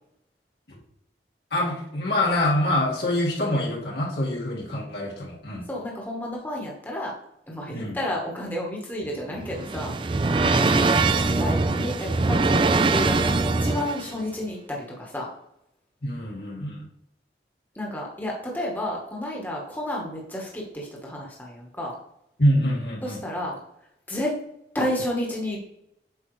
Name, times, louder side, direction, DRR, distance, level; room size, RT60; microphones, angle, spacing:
voice 1, 1.5-5.7 7.7-8.0 10.4-11.4 16.0-16.9 22.4-23.2, left 1 dB, 70° left, -3 dB, 2.0 m, -26 dB
voice 2, 5.7-7.1 7.5-10.0 10.5-10.8 11.4-15.3 17.7-21.9 23.0-23.6 24.1-24.3 24.7-25.6, left 1 dB, 10° left, -2 dB, 1.1 m, -31 dB
sound 1, 9.0-14.1, right 3 dB, 30° right, 0.4 m, -22 dB
7.9 x 5.6 x 3.1 m, 0.80 s
head